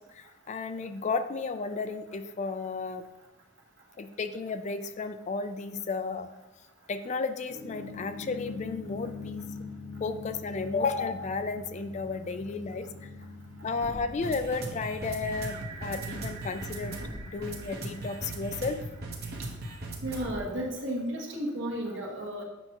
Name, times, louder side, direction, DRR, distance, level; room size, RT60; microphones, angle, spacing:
voice 1, 0.2-3.0 4.0-6.3 6.9-9.4 10.0-12.9 13.6-17.0 17.3-18.8, left 4 dB, 35° left, 10 dB, 0.4 m, -33 dB
sound 1, 7.5-20.5, equal, 55° right, 1.1 m, -40 dB
sound 2, 15.2-20.4, right 4 dB, 35° right, 0.9 m, -48 dB
voice 2, 20.0-22.4, right 1 dB, 70° right, 0 dB, 1.4 m, -33 dB
7.8 x 5.8 x 2.9 m, 1.0 s
head